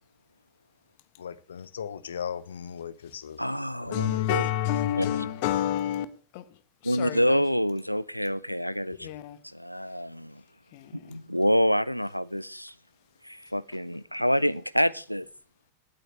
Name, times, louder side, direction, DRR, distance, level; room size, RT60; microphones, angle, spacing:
voice 1, 1.2-3.4 3.8-4.3 9.0-9.1, left 7 dB, 65° left, 0.9 m, -38 dB
voice 2, 3.4-4.4 5.0-5.1 6.8-9.1 9.4-10.4 10.9-12.7 13.2-15.3, equal, 90° left, 0.5 m, -27 dB
voice 3, 3.9-6.1 6.3-6.6 6.8-7.4 9.0-9.4 10.7-11.2, left 11 dB, 50° left, 1.3 m, -29 dB
19.5 x 9.2 x 3.2 m
figure-of-eight pair, 90°, 0 cm